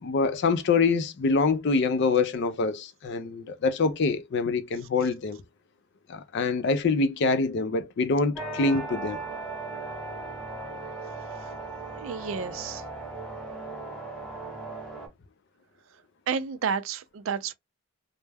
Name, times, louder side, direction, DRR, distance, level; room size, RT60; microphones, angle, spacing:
voice 1, 0.0-5.4 6.1-9.2, left 4 dB, 55° left, 0.4 m, -25 dB
sound 1, 8.4-15.1, right 3 dB, 5° left, 0.8 m, -37 dB
voice 2, 12.0-12.8 16.3-17.5, right 6 dB, 65° right, 0.4 m, -31 dB
2.2 x 2.0 x 3.3 m
head